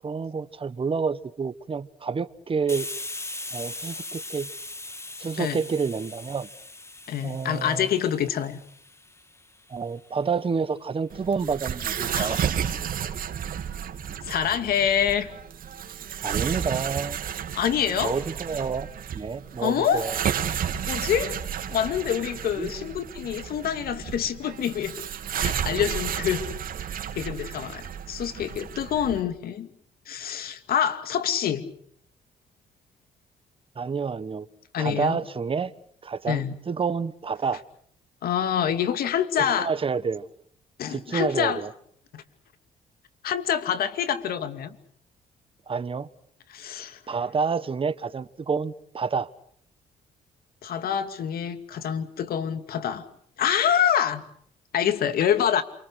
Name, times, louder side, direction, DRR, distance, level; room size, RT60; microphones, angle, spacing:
voice 1, 0.0-2.9 3.5-4.5 5.2-6.5 7.2-7.9 9.7-12.4 16.2-17.2 18.0-18.9 19.1-20.2 22.6-22.7 33.7-34.5 34.8-35.7 36.0-37.6 39.4-40.3 40.9-41.7 45.7-46.1 47.1-49.3, right 5 dB, 35° right, 1.3 m, -29 dB
Hiss, 2.7-10.1, left 2 dB, 15° left, 2.1 m, -39 dB
voice 2, 7.1-8.6 12.1-12.4 14.2-15.3 17.5-18.2 19.6-20.1 20.9-21.4 21.7-25.0 25.4-26.4 27.1-29.7 30.1-31.6 34.7-35.2 36.3-36.5 38.2-39.7 40.8-41.6 42.1-42.2 43.2-44.8 46.5-47.0 50.6-53.0 53.4-54.2 54.7-55.6, left 9 dB, 70° left, 2.5 m, -26 dB
sound 1, 11.1-29.2, right 9 dB, 65° right, 2.7 m, -32 dB
28.0 x 25.0 x 6.4 m
cardioid pair, 75°, 16 cm